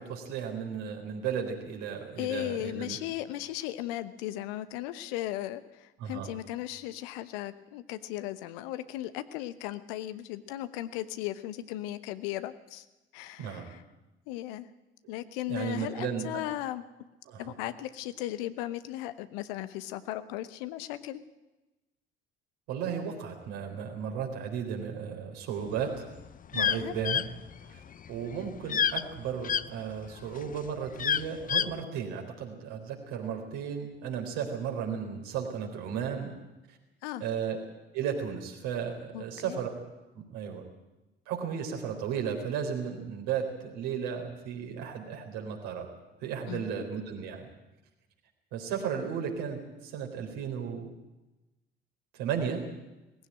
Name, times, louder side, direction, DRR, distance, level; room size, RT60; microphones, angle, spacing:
voice 1, 0.0-3.0 6.0-6.3 13.4-13.7 15.5-16.3 17.3-17.5 22.7-25.9 26.5-27.2 27.7-27.8 28.1-36.3 36.7-36.8 37.2-37.6 37.9-39.7 40.1-40.6 41.3-45.9 46.2-47.5 48.5-50.9 52.1-52.6, right 7 dB, 65° right, 3 dB, 4.0 m, -34 dB
voice 2, 2.2-12.8 13.1-13.8 14.3-14.7 15.1-16.8 17.4-21.2 26.5-26.9 37.0-37.2 39.1-39.6 46.5-46.9, left 14 dB, 65° left, 13 dB, 1.1 m, -36 dB
sound 1, 25.8-29.6 30.1-31.8, left 8 dB, 25° left, 0.6 m, -28 dB
19.0 x 15.5 x 8.9 m, 1.0 s
figure-of-eight pair, 50°, 30 cm